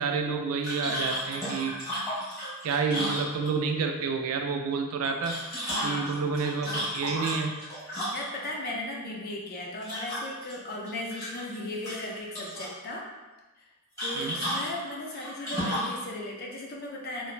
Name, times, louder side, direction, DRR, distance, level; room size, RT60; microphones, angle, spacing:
voice 1, 0.0-1.7 2.6-5.4 5.8-7.5 14.2-14.4, right 5 dB, 70° right, 4 dB, 0.3 m, -29 dB
sound 1, 0.6-3.8 5.0-8.5 9.8-10.5 10.9-11.6 11.8-12.7 14.0-16.0, equal, 15° left, 1.4 m, -33 dB
voice 2, 5.7-6.2 8.1-13.0 14.0-17.3, left 1 dB, 45° left, -1 dB, 0.4 m, -36 dB
3.1 x 2.0 x 2.4 m, 1.2 s
head